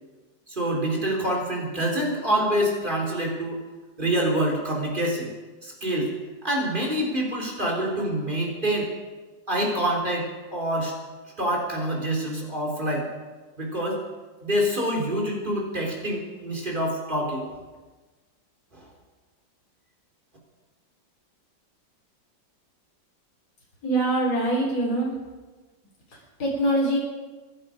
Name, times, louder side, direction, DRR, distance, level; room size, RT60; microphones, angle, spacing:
voice 1, 0.5-3.6 4.0-5.3 5.6-6.1 6.4-8.9 9.5-10.9 11.4-13.1 13.6-14.0 14.4-17.5 18.7-18.9, right 1 dB, 25° right, -1 dB, 3.9 m, -26 dB
voice 2, 23.8-25.1 26.1-27.0, right 1 dB, 55° left, -4 dB, 4.5 m, -24 dB
25.5 x 11.0 x 5.1 m, 1.3 s
omnidirectional pair, 2.0 m